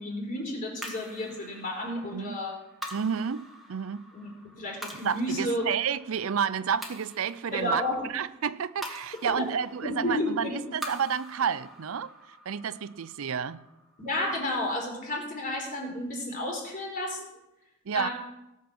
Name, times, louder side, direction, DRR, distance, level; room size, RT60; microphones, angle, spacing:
voice 1, 0.0-2.6 4.1-5.7 7.5-8.0 9.3-9.5 9.8-10.7 14.0-17.2 17.9-18.1, left 1 dB, 40° left, 0 dB, 4.0 m, -32 dB
sound 1, 0.8-15.3, equal, ahead, 2.1 m, -46 dB
voice 2, 2.9-4.1 5.0-7.8 8.1-12.1 12.5-13.6 17.9-18.1, right 7 dB, 70° right, 15 dB, 0.5 m, -30 dB
18.0 x 7.3 x 6.0 m, 0.92 s
head